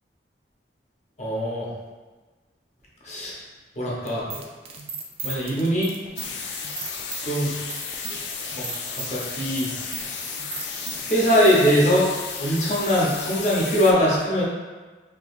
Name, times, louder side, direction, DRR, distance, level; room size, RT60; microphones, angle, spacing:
voice 1, 1.2-1.7 3.0-3.3 3.8-4.3 5.2-5.9 7.2-7.6 8.5-8.7 9.1-9.7 10.0-10.3 11.1-12.1 12.4-14.4, equal, 40° left, -5 dB, 0.8 m, -21 dB
sound 1, 4.1-11.6, right 5 dB, 30° right, 0.3 m, -36 dB
sound 2, 6.2-13.9, left 5 dB, 70° left, 0.3 m, -33 dB
3.5 x 2.9 x 2.4 m, 1.3 s
head